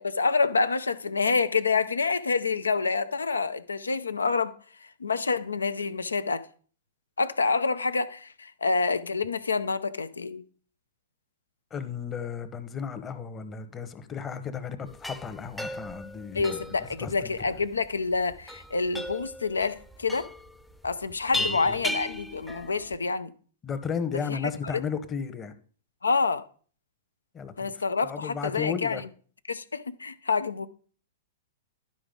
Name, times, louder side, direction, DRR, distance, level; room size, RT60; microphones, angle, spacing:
voice 1, 0.0-4.5 5.0-6.4 7.2-10.4 16.3-20.3 20.8-23.3 24.3-24.7 26.0-26.4 27.6-29.0 29.5-30.7, left 4 dB, 90° left, 0.6 m, -27 dB
voice 2, 11.7-16.6 17.0-17.3 21.3-21.8 23.6-25.5 27.3-29.0, left 6 dB, 25° left, 1.0 m, -34 dB
sound 1, 14.9-23.0, left 1 dB, 5° left, 0.6 m, -36 dB
11.5 x 4.9 x 3.8 m
hypercardioid pair, 110°, 0 cm